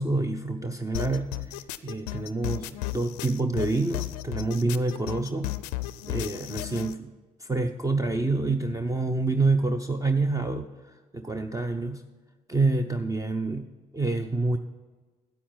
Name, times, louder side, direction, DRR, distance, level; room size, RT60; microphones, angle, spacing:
voice 1, 0.0-1.3 1.8-5.6 6.0-7.1 7.4-12.0 12.5-13.7 13.9-14.6, right 3 dB, 15° right, 7 dB, 0.6 m, -27 dB
sound 1, 0.9-6.9, left 17 dB, 80° left, 0.4 m, -34 dB
10.0 x 8.0 x 5.8 m, 1.3 s
hypercardioid pair, 50°, 20 cm